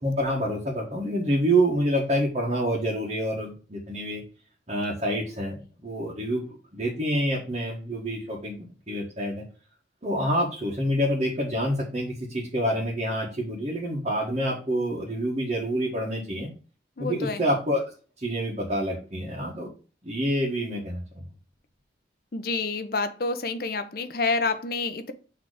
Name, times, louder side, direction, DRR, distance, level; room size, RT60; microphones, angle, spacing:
voice 1, 0.0-4.2 4.7-5.5 5.8-6.4 6.7-8.5 8.9-9.4 10.0-16.5 17.0-17.8 18.2-19.7 20.0-21.3, equal, 35° right, 1.5 m, -27 dB
voice 2, 17.0-17.4 22.3-25.1, left 3 dB, 50° left, 0.7 m, -28 dB
6.6 x 3.4 x 4.9 m
head